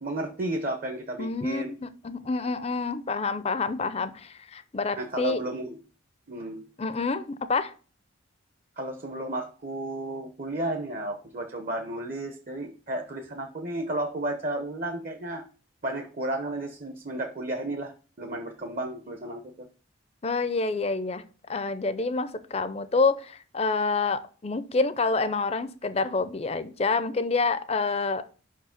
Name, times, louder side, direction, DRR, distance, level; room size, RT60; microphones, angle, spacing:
voice 1, 0.0-1.7 5.0-5.8 6.3-6.7 8.8-15.4 15.8-19.7, right 1 dB, 40° right, 4 dB, 0.7 m, -33 dB
voice 2, 1.2-5.4 6.8-7.7 20.2-21.2 21.5-28.2, left 4 dB, 30° left, 12 dB, 0.5 m, -27 dB
5.6 x 4.7 x 5.8 m, 0.37 s
head